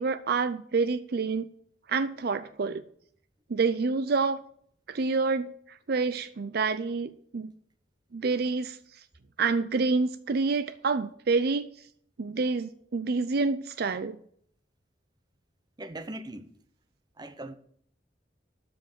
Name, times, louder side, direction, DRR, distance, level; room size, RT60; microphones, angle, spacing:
voice 1, 0.0-1.5 1.9-2.8 3.5-4.4 4.9-7.5 8.1-8.8 9.4-11.7 12.2-14.2, right 4 dB, 55° right, 0.5 m, -28 dB
voice 2, 15.8-16.5 17.2-17.6, right 1 dB, 25° right, 0.8 m, -39 dB
13.0 x 5.2 x 7.8 m
head